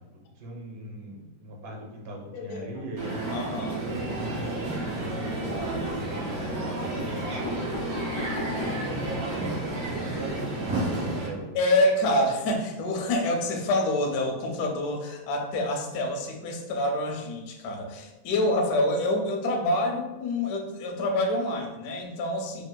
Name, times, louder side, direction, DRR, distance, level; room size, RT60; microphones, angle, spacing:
voice 1, 0.0-3.4 3.7-11.5, right 1 dB, 85° right, -1 dB, 1.4 m, -40 dB
voice 2, 2.3-3.0 3.3-3.8 5.1-6.0 6.8-7.0 11.5-22.6, left 1 dB, 70° left, 2 dB, 1.0 m, -27 dB
Crowd, 3.0-11.3, right 2 dB, 65° right, 1.2 m, -31 dB
sound 1, 5.5-6.1 6.8-6.9 7.2-9.0 9.5-9.6 9.8-9.9 10.1-10.3, left 2 dB, 45° left, 0.8 m, -36 dB
3.6 x 2.5 x 2.2 m, 1.1 s
omnidirectional pair, 1.9 m